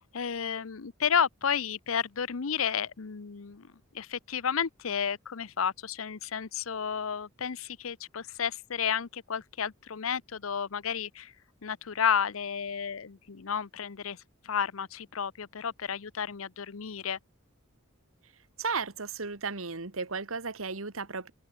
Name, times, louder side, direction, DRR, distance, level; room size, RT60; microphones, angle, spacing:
voice 1, 0.1-11.3 11.6-17.2, left 7 dB, 85° left, 0.7 m, -32 dB
voice 2, 18.6-21.3, right 4 dB, 85° right, 1.9 m, -34 dB
open air
head